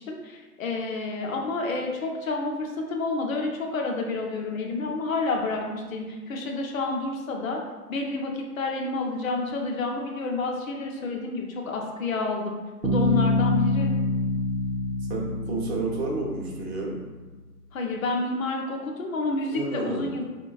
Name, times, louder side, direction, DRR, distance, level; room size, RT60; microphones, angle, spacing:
voice 1, 0.0-7.6 7.9-13.9 17.7-20.2, left 3 dB, 55° left, 1 dB, 0.7 m, -29 dB
Bass guitar, 12.8-16.6, left 2 dB, 80° right, 0.7 m, -26 dB
voice 2, 15.1-17.0 19.5-20.2, right 3 dB, 40° right, -3 dB, 0.8 m, -31 dB
3.7 x 2.2 x 2.3 m, 1.3 s
figure-of-eight pair, 125°, 48 cm